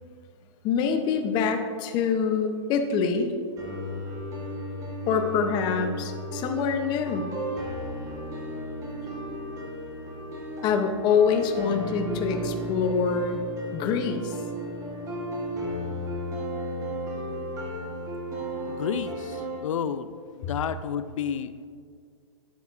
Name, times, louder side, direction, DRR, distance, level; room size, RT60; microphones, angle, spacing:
voice 1, 0.6-3.3 5.1-7.2 10.6-13.4 13.7-14.4, left 6 dB, 25° left, 6 dB, 0.7 m, -25 dB
sound 1, 3.6-19.6, equal, 20° right, 1.3 m, -34 dB
voice 2, 18.7-20.1 20.4-21.7, left 8 dB, 85° left, 12 dB, 0.4 m, -31 dB
11.5 x 6.9 x 2.5 m, 2.1 s
hypercardioid pair, 150°, 16 cm